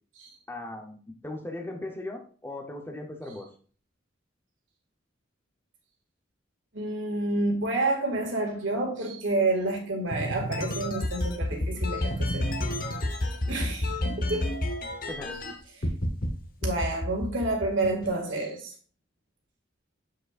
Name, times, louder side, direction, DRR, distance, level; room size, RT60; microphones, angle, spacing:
voice 1, 0.5-3.5 15.1-15.4, left 2 dB, 10° left, 2 dB, 0.7 m, -38 dB
voice 2, 6.7-12.5 13.5-14.6 16.6-18.7, right 2 dB, 80° right, 1 dB, 2.0 m, -29 dB
sound 1, 10.1-15.5 15.8-16.3 16.6-18.1, left 1 dB, 45° left, 1.0 m, -29 dB
7.5 x 6.5 x 2.4 m, 0.42 s
head